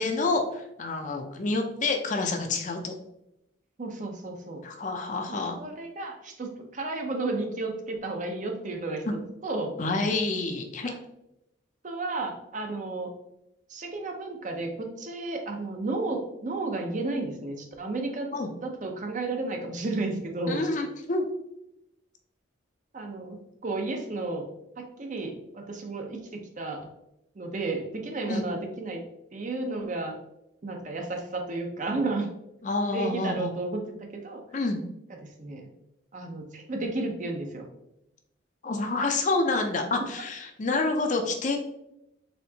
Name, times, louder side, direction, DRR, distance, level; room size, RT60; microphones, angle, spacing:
voice 1, 0.0-3.0 4.6-5.6 9.0-9.2 9.8-10.9 18.3-18.5 20.5-21.3 28.3-28.4 32.6-33.5 34.5-34.8 38.6-41.6, left 3 dB, 40° left, 4 dB, 0.5 m, -28 dB
voice 2, 3.8-4.6 5.3-9.1 9.4-9.8 10.8-11.0 11.8-13.1 13.7-18.3 18.6-20.6 22.9-23.4 23.6-24.5 24.8-26.9 27.4-29.0 29.3-30.2 30.6-32.3 32.9-33.8 34.1-34.4 35.2-35.6 36.1-37.7, right 2 dB, 40° right, 3 dB, 0.6 m, -32 dB
4.2 x 3.7 x 2.8 m, 0.84 s
head